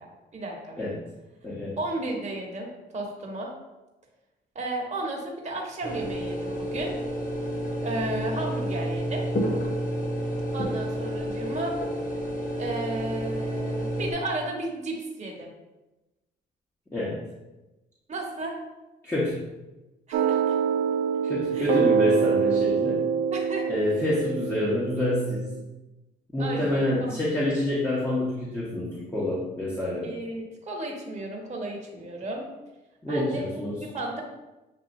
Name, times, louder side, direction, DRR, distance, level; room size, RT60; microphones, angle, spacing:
voice 1, 0.3-0.9 1.8-3.5 4.5-6.9 7.8-9.3 10.5-11.7 12.6-15.5 18.1-18.5 20.1-20.6 21.5-21.7 23.3-23.7 26.4-27.1 30.0-32.5 33.1-33.4 33.9-34.2, right 2 dB, 35° right, -2 dB, 1.3 m, -33 dB
voice 2, 1.4-1.8 16.9-17.2 19.0-19.4 21.2-23.0 23.7-25.5 26.3-30.1 33.0-33.8, left 1 dB, 10° left, -7 dB, 1.2 m, -27 dB
sound 1, 5.8-14.1, equal, 45° left, 1.0 m, -30 dB
sound 2, 20.1-25.6, right 6 dB, 75° right, 0.4 m, -25 dB
7.4 x 2.6 x 2.6 m, 1.0 s
supercardioid pair, 65°, 20 cm